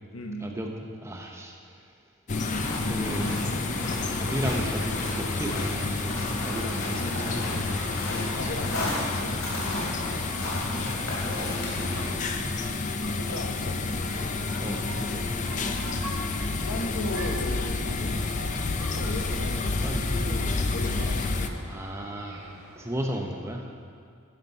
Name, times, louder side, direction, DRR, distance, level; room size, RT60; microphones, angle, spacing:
voice 1, 0.1-0.6 6.9-7.2 8.1-9.4 13.1-13.8 16.5-18.4 18.8-21.6, left 1 dB, 85° left, 3 dB, 1.1 m, -37 dB
voice 2, 1.0-1.9 2.8-3.4 4.1-7.7 8.1-8.2 11.8-12.7 14.6-15.7 19.6-20.2 21.7-22.5 22.7-23.7, right 1 dB, 15° right, 1 dB, 0.8 m, -35 dB
sound 1, 2.3-12.0, left 1 dB, 65° left, 3.1 m, -35 dB
sound 2, 2.3-21.5, left 3 dB, 35° left, 0.5 m, -30 dB
sound 3, 4.4-23.2, right 1 dB, 80° right, 1.7 m, -46 dB
13.5 x 6.0 x 5.4 m, 2.3 s
head